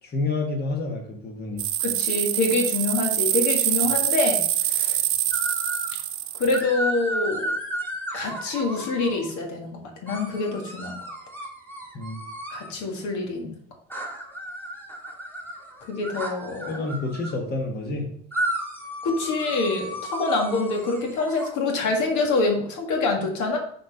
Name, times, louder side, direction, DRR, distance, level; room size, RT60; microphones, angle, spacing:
voice 1, 0.0-1.6 11.9-12.2 16.7-18.1, left 3 dB, 30° left, 1 dB, 1.4 m, -29 dB
cicada glisson synthesis, 1.6-6.6, right 13 dB, 65° right, 0.8 m, -25 dB
voice 2, 1.8-5.0 6.4-7.5 8.1-11.0 12.5-13.6 15.9-16.9 19.0-23.6, left 3 dB, 65° left, 2 dB, 1.8 m, -26 dB
sound 1, 5.3-6.0 6.5-9.3 10.1-12.7 13.9-17.3 18.3-21.5, right 1 dB, 5° left, 2.4 m, -33 dB
5.9 x 4.3 x 5.6 m, 0.65 s
cardioid pair, 105°, 31 cm